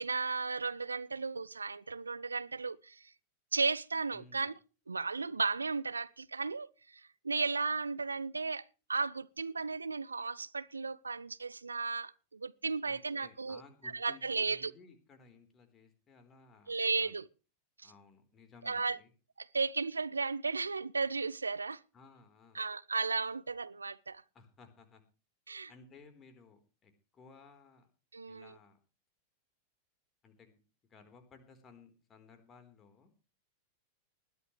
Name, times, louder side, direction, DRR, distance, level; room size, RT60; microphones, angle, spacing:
voice 1, 0.0-3.1 3.5-4.5 4.9-14.7 16.7-17.3 17.8-17.9 18.6-19.0 19.4-21.8 22.5-24.2 25.5-25.7 28.1-28.5, right 4 dB, 75° right, 0.6 m, -35 dB
voice 2, 4.1-4.5 12.8-17.1 17.8-19.1 21.9-22.6 24.3-25.0 25.7-27.9 28.3-28.8 30.2-30.6 30.9-33.1, left 4 dB, 25° left, 4.1 m, -58 dB
20.0 x 13.5 x 3.3 m
figure-of-eight pair, 90°, 0 cm